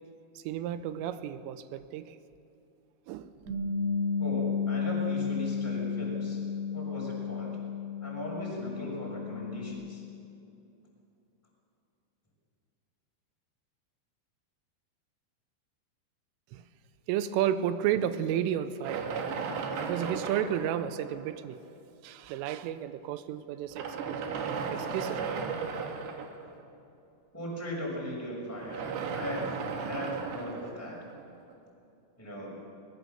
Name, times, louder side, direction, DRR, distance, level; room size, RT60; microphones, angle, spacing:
voice 1, 0.4-2.2 3.1-3.3 16.5-16.6 17.1-19.1 19.8-21.6 22.0-24.2 24.7-25.2, right 10 dB, 80° right, 12 dB, 3.2 m, -32 dB
Bass guitar, 3.5-9.7, left 6 dB, 40° right, 5.4 m, -32 dB
voice 2, 4.2-6.4 6.7-7.5 8.0-10.0 27.3-31.0 32.2-32.5, equal, 5° left, -4 dB, 5.4 m, -38 dB
sound 1, 18.8-21.6 22.4-22.5 23.6-26.6 28.5-31.5, right 5 dB, 65° right, 3.4 m, -35 dB
21.5 x 21.0 x 6.8 m, 2.7 s
omnidirectional pair, 5.9 m